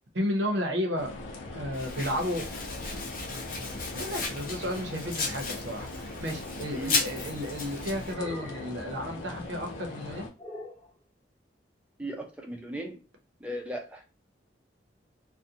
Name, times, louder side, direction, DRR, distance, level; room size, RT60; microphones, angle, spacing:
voice 1, 0.1-1.1 1.5-2.7 3.9-10.3, equal, 70° right, 3 dB, 0.8 m, -33 dB
sound 1, 1.0-10.3, left 2 dB, 90° left, 0.7 m, -40 dB
Domestic sounds home sounds, 1.7-8.1, left 4 dB, 50° left, 0.6 m, -35 dB
sound 2, 6.9-7.3 8.0-8.9 10.4-10.9, left 1 dB, 10° left, 0.8 m, -44 dB
voice 2, 12.0-13.0 13.4-14.0, right 1 dB, 5° right, 1 dB, 0.4 m, -37 dB
2.5 x 2.1 x 2.7 m, 0.32 s
head